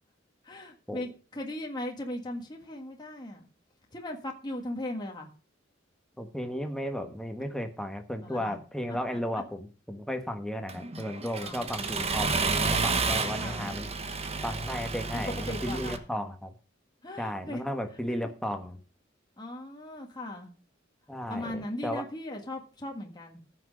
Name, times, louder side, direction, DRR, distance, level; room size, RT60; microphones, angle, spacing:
voice 1, 0.4-3.5 3.9-5.3 8.2-8.6 9.3-9.4 11.4-12.2 13.4-13.7 15.5-16.0 17.0-17.6 19.4-20.5 21.3-23.4, left 1 dB, 20° left, 1 dB, 1.7 m, -38 dB
voice 2, 6.2-13.9 14.4-16.5 17.2-18.8 21.1-22.0, equal, 5° left, 6 dB, 1.4 m, -34 dB
Accelerating revving vroom, 10.7-16.0, right 4 dB, 35° right, 1.1 m, -31 dB
15.0 x 6.3 x 5.3 m, 0.36 s
head